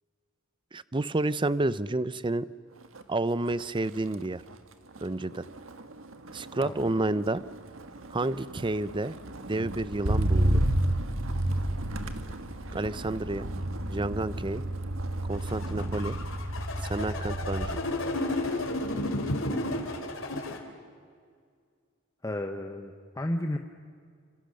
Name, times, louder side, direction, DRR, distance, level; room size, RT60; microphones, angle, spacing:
voice 1, 0.7-2.4 3.1-4.4 5.0-5.4 6.3-7.4 8.1-9.2 9.5-10.6 12.7-13.5 13.9-14.6 15.3-16.2 16.8-17.8, right 2 dB, 25° right, 16 dB, 0.6 m, -30 dB
Motor vehicle (road), 2.8-3.1 3.5-17.9 18.3-18.7, right 1 dB, 70° right, 1.6 m, -32 dB
voice 2, 6.6-6.9 22.2-23.6, left 1 dB, 15° left, 3 dB, 1.0 m, -33 dB
sound 1, 15.3-20.6, left 2 dB, 65° left, 3.2 m, -32 dB
28.0 x 26.0 x 6.5 m, 2.1 s
head